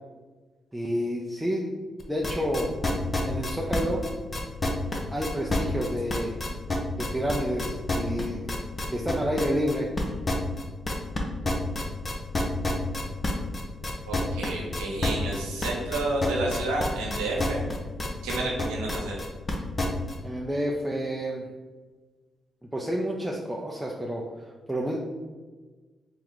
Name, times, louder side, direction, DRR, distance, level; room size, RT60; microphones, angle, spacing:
voice 1, 0.7-1.7 2.1-2.7 3.2-4.1 5.1-6.4 6.9-8.5 8.9-9.9 20.2-21.4 22.7-25.0, equal, 10° right, -2 dB, 0.6 m, -29 dB
sound 1, 2.0-20.1, left 2 dB, 35° left, 0.8 m, -28 dB
voice 2, 14.1-17.6 18.2-19.2, right 2 dB, 90° right, -2 dB, 0.8 m, -30 dB
3.3 x 2.9 x 3.9 m, 1.4 s
hypercardioid pair, 45°, 0 cm